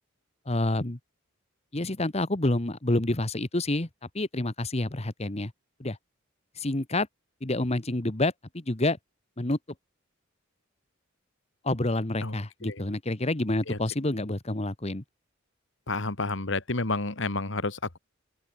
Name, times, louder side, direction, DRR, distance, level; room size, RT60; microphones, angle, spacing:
voice 1, 0.5-1.0 1.7-3.9 4.1-5.5 5.8-6.0 6.6-7.1 7.4-9.0 9.4-9.6 11.6-15.0, left 2 dB, 30° left, 1.4 m, -28 dB
voice 2, 12.2-12.8 13.7-13.8 15.9-18.0, left 3 dB, 65° left, 2.2 m, -30 dB
open air
head